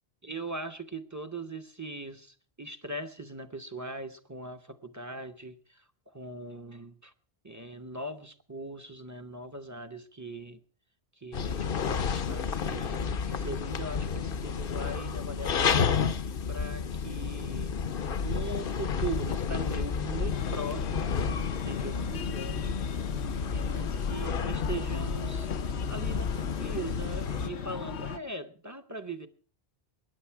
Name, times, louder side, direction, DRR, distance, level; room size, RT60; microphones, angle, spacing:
voice 1, 0.2-7.1 7.4-10.6 11.2-13.0 13.3-17.8 18.1-22.8 23.5-25.5 25.9-29.3, right 2 dB, 20° right, 8 dB, 0.8 m, -40 dB
sound 1, 11.3-27.5, left 6 dB, 60° left, 1.0 m, -31 dB
Breathing, 20.3-28.2, left 7 dB, 90° left, 1.1 m, -37 dB
21.5 x 9.7 x 4.6 m, 0.42 s
omnidirectional pair, 1.1 m